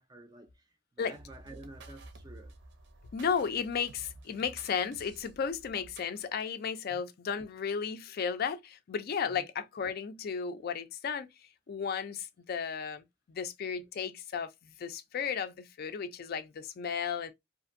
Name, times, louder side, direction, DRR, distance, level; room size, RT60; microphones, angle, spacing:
voice 1, 0.0-2.5 6.9-7.0 9.3-9.5, right 2 dB, 20° right, 0.4 m, -51 dB
sound 1, 1.1-6.2, right 2 dB, 65° right, 0.6 m, -52 dB
voice 2, 3.1-11.3 11.7-17.3, left 6 dB, 50° left, 0.4 m, -34 dB
2.5 x 2.5 x 2.5 m
head